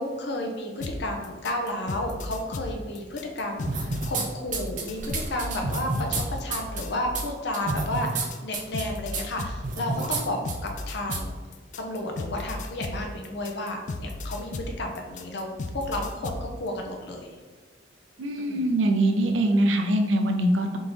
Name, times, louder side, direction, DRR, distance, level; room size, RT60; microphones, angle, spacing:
voice 1, 0.0-11.3 11.8-17.3 18.4-18.7, left 1 dB, 65° left, 2 dB, 0.7 m, -32 dB
sound 1, 0.8-7.3 7.7-16.5, left 2 dB, 45° left, 0.3 m, -35 dB
sound 2, 3.7-4.2 4.5-6.2 6.5-6.8 7.1-7.2 7.5-8.3 8.5-8.8 9.1-9.2 9.6-10.2 10.5-10.6 11.1-11.2, right 3 dB, 45° right, 0.6 m, -29 dB
voice 2, 18.2-20.8, right 1 dB, 90° right, 4 dB, 0.5 m, -23 dB
3.9 x 3.6 x 3.1 m, 1.4 s
head